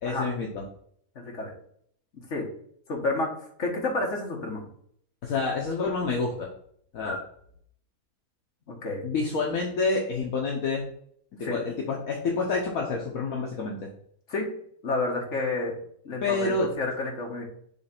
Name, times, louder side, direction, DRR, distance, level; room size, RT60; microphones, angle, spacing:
voice 1, 0.0-0.6 5.2-6.5 6.9-7.2 9.0-10.8 11.4-13.9 16.2-16.7, left 4 dB, 70° left, -2 dB, 1.3 m, -28 dB
voice 2, 1.1-1.5 2.1-2.5 2.9-4.7 8.7-9.0 11.4-11.6 14.3-14.5 14.8-15.8 16.0-17.4, left 2 dB, 55° left, 0 dB, 1.8 m, -30 dB
7.2 x 3.2 x 4.4 m, 0.64 s
omnidirectional pair, 1.6 m